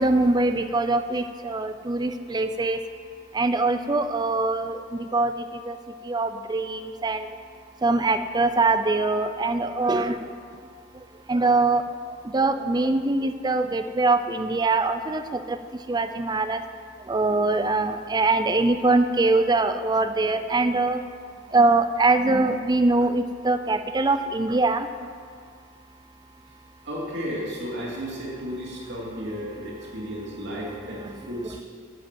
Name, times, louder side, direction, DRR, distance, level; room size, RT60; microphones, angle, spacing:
voice 1, 0.0-2.8 3.3-4.8 5.1-5.3 5.7-5.8 6.1-7.3 7.8-10.2 11.3-11.8 12.3-15.2 15.5-15.6 15.9-16.6 17.1-21.0 21.5-24.9, right 3 dB, 20° right, 9 dB, 0.4 m, -22 dB
voice 2, 26.8-31.6, equal, 60° right, -4 dB, 2.7 m, -33 dB
9.1 x 7.7 x 7.4 m, 2.1 s
head